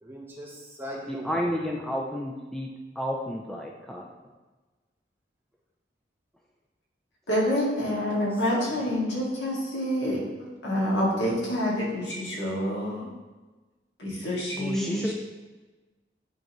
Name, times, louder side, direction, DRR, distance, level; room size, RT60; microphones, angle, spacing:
voice 1, 0.0-1.6 8.5-8.7 14.9-15.1, equal, 15° right, -3 dB, 1.1 m, -39 dB
voice 2, 1.1-2.7 3.0-4.0 14.6-15.1, equal, 5° left, -2 dB, 0.5 m, -31 dB
voice 3, 7.3-13.1 14.0-15.1, equal, 75° left, -4 dB, 2.1 m, -27 dB
10.0 x 3.9 x 3.0 m, 1.2 s
head